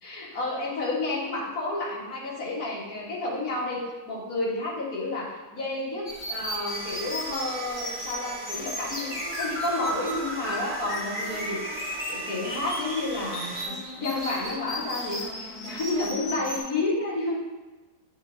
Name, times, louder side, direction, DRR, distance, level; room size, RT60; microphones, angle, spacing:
voice 1, 0.0-17.4, left 2 dB, 65° left, -4 dB, 2.1 m, -31 dB
sound 1, 6.0-16.6, left 1 dB, 45° left, 2.4 m, -35 dB
sound 2, 6.7-13.6, right 4 dB, 50° right, 1.0 m, -40 dB
9.6 x 4.9 x 2.7 m, 1.2 s
omnidirectional pair, 1.7 m